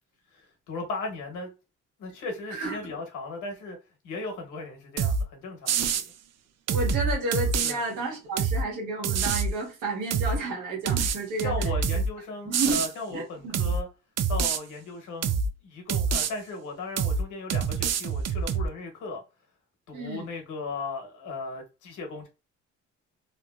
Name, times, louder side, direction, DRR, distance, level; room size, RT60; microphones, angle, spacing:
voice 1, 0.3-1.5 2.0-3.8 4.0-6.1 7.6-7.8 11.4-13.9 14.3-19.2 19.9-22.3, left 3 dB, 85° left, 1.1 m, -37 dB
voice 2, 2.6-2.9 6.7-11.5 12.4-12.8 13.1-13.7 19.9-20.3, right 2 dB, 85° right, 1.5 m, -31 dB
sound 1, 5.0-5.2 5.7-6.1 6.7-7.7 8.4-8.6 9.0-9.5 10.1-10.4 10.9-12.1 12.5-12.9 13.5-13.8 14.2-14.6 15.2-15.5 15.9-16.3 17.0-17.2 17.5-18.7, right 6 dB, 60° right, 0.5 m, -26 dB
3.0 x 2.6 x 2.3 m
cardioid pair, 90°, 30 cm